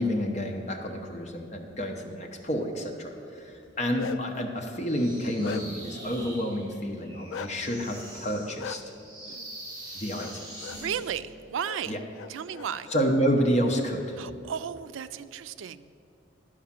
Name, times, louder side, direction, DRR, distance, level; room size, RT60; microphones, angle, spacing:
voice 1, 0.0-8.8 9.9-10.8 11.9-12.0 12.9-14.2, equal, 35° left, 2 dB, 1.0 m, -29 dB
Bark, 3.6-4.4 4.9-5.9 7.3-7.5 8.6-8.8 10.1-10.3 10.6-10.8 11.6-11.8 12.1-13.0, left 6 dB, 85° left, 0.4 m, -38 dB
sound 1, 4.8-11.2, right 1 dB, 25° right, 2.1 m, -44 dB
voice 2, 9.3-9.6 10.7-12.0 12.3-12.9 14.2-15.9, right 8 dB, 85° right, 14 dB, 0.4 m, -35 dB
11.5 x 4.9 x 7.4 m, 2.7 s
head